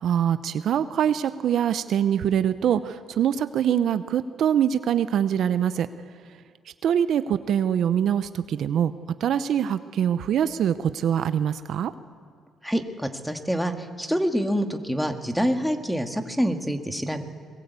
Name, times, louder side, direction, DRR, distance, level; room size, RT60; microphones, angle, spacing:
voice 1, 0.0-5.9 6.8-8.9 9.2-11.9, right 9 dB, 65° right, 12 dB, 0.7 m, -24 dB
voice 2, 12.6-17.2, equal, ahead, 5 dB, 1.9 m, -26 dB
22.0 x 21.5 x 8.3 m, 2.1 s
cardioid pair, 105°, 0 cm